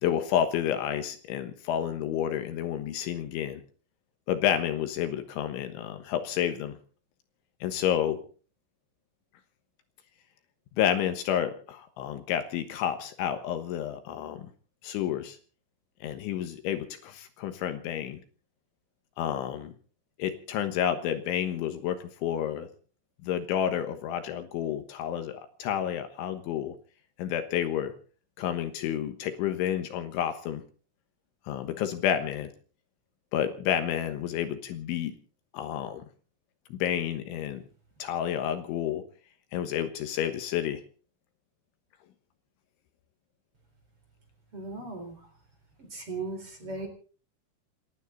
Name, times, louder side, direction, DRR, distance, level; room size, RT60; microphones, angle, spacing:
voice 1, 0.0-3.6 4.3-6.8 7.6-8.2 10.8-14.5 14.8-15.4 16.0-18.2 19.2-19.7 20.2-22.7 23.2-26.8 27.2-27.9 28.4-30.6 31.5-32.5 33.3-35.1 35.5-36.1 36.7-37.6 38.0-39.0 39.5-40.8, left 10 dB, 75° left, 8 dB, 3.5 m, -30 dB
voice 2, 44.5-45.2 45.8-46.9, right 3 dB, 30° right, 5 dB, 4.5 m, -37 dB
28.5 x 12.0 x 4.0 m, 0.41 s
omnidirectional pair, 5.9 m